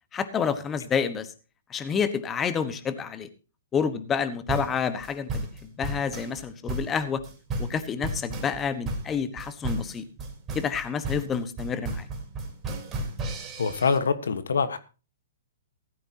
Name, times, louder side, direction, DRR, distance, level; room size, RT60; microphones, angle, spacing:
voice 1, 0.1-1.3 1.7-3.3 3.7-7.2 7.6-10.0 10.5-12.1, left 6 dB, 20° left, 1.2 m, -29 dB
sound 1, 4.5-14.0, right 2 dB, 20° right, 4.0 m, -33 dB
voice 2, 13.6-14.8, left 5 dB, 80° left, 1.3 m, -25 dB
16.0 x 14.0 x 2.9 m
hypercardioid pair, 135°, 0 cm